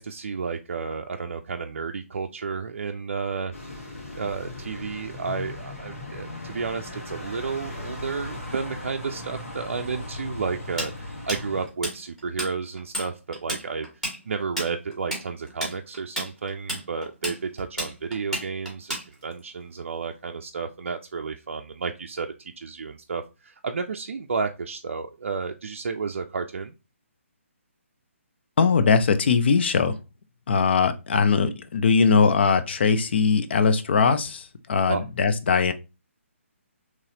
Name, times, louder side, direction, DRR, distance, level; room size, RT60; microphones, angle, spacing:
voice 1, 0.0-3.5 4.1-26.7 34.9-35.0, right 5 dB, 60° right, 0.4 m, -32 dB
sound 1, 3.5-11.7, left 2 dB, 80° left, 1.5 m, -38 dB
Tools, 10.8-12.5 12.8-13.1 13.3-19.4, right 1 dB, 5° left, 1.4 m, -31 dB
voice 2, 28.6-29.9 30.5-35.7, left 5 dB, 50° left, 0.5 m, -21 dB
3.9 x 3.0 x 2.7 m
figure-of-eight pair, 140°, 7 cm